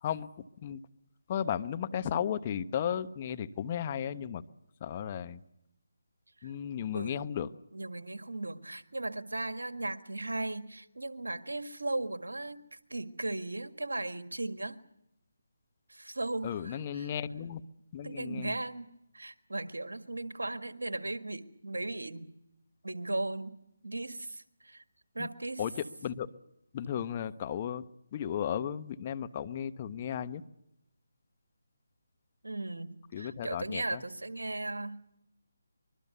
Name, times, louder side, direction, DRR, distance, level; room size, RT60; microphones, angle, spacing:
voice 1, 0.0-0.8 1.3-4.4 4.8-5.4 6.4-7.5 16.4-17.6 17.9-18.6 25.2-25.3 25.6-26.3 26.7-30.4 33.1-34.0, left 9 dB, 30° left, 12 dB, 1.0 m, -35 dB
voice 2, 7.7-12.6 12.9-14.8 15.9-17.1 18.0-22.3 22.8-23.6 23.8-24.8 25.1-25.6 32.4-35.0, right 2 dB, 80° right, 9 dB, 1.8 m, -37 dB
24.5 x 22.5 x 6.9 m, 0.83 s
figure-of-eight pair, 155°, 0 cm